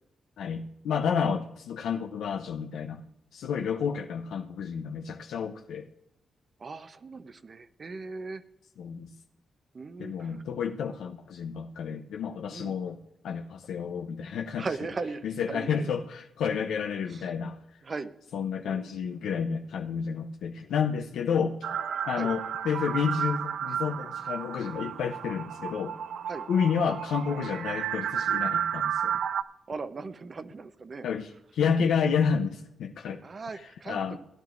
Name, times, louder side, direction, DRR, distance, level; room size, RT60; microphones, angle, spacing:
voice 1, 0.4-3.0 3.3-5.9 8.8-9.1 10.0-13.0 13.2-14.7 15.2-17.6 18.3-21.6 22.1-25.9 26.5-29.2 31.0-33.2 33.9-34.2, left 6 dB, 90° left, 3 dB, 0.6 m, -30 dB
voice 2, 6.6-8.4 9.7-10.4 12.5-12.8 14.6-15.9 17.1-17.3 17.8-18.1 18.6-18.9 22.2-22.3 26.3-26.5 29.7-31.1 33.1-34.2, right 4 dB, 40° right, 11 dB, 0.7 m, -38 dB
sound 1, 21.6-29.4, right 9 dB, 75° right, 0.4 m, -32 dB
18.0 x 10.5 x 2.5 m, 0.87 s
cardioid pair, 105°, 0 cm